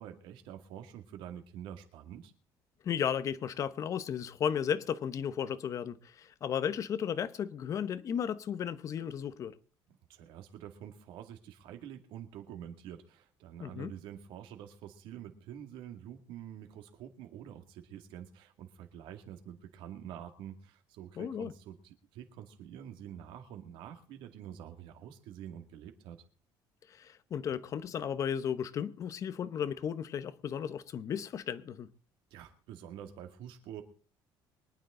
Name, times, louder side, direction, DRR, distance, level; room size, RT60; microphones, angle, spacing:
voice 1, 0.0-2.3 10.1-26.2 32.3-33.8, right 10 dB, 75° right, 2.2 m, -47 dB
voice 2, 2.8-9.5 13.6-13.9 21.2-21.5 26.9-31.9, left 8 dB, 40° left, 0.9 m, -34 dB
24.0 x 9.3 x 3.8 m
cardioid pair, 150°, 9 cm